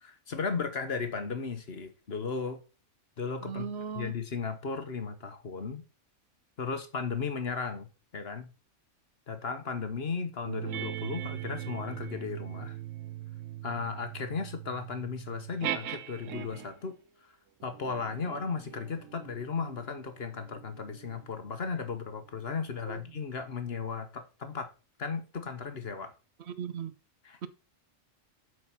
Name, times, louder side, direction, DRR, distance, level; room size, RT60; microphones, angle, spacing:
voice 1, 0.0-2.6 3.2-3.7 3.9-5.8 6.6-8.5 9.3-12.8 13.6-16.9 17.6-24.7 25.0-26.1 27.2-27.4, left 5 dB, 55° left, 1.5 m, -35 dB
voice 2, 3.4-4.1 22.9-23.0 26.4-26.9 27.4-27.5, right 7 dB, 65° right, 0.9 m, -37 dB
sound 1, 10.5-16.9 17.6-22.5, right 12 dB, 90° right, 1.1 m, -41 dB
8.2 x 4.6 x 6.0 m
omnidirectional pair, 1.3 m